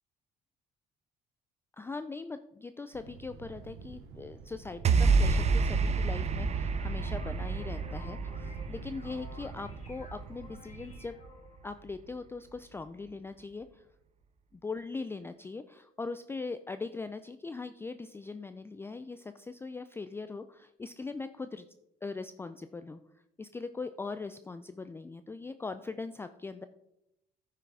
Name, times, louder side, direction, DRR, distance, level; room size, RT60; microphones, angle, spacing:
voice 1, 1.8-11.2 11.6-13.9 14.5-21.7 22.0-23.0 23.4-26.7, left 4 dB, 15° left, 10 dB, 0.4 m, -40 dB
Thunder, 2.9-11.0, right 5 dB, 85° right, 1.0 m, -48 dB
sound 1, 4.8-11.3, right 4 dB, 40° right, 0.8 m, -29 dB
sound 2, 6.7-11.7, left 4 dB, 40° left, 2.2 m, -53 dB
10.0 x 5.7 x 4.8 m, 0.86 s
cardioid pair, 110°, 17 cm